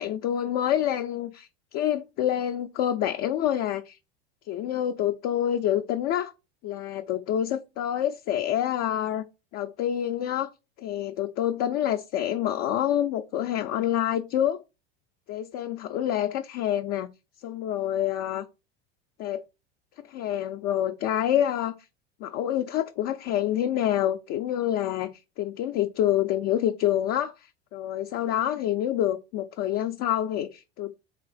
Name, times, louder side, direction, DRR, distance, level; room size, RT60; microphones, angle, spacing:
voice 1, 0.0-4.0 4.5-6.3 6.6-9.2 9.5-10.5 10.8-14.6 15.3-17.1 17.4-18.5 19.2-19.4 20.1-21.8 22.2-25.1 25.4-30.9, left 11 dB, 55° left, 0.4 m, -27 dB
3.8 x 2.9 x 3.2 m
hypercardioid pair, 95°, 31 cm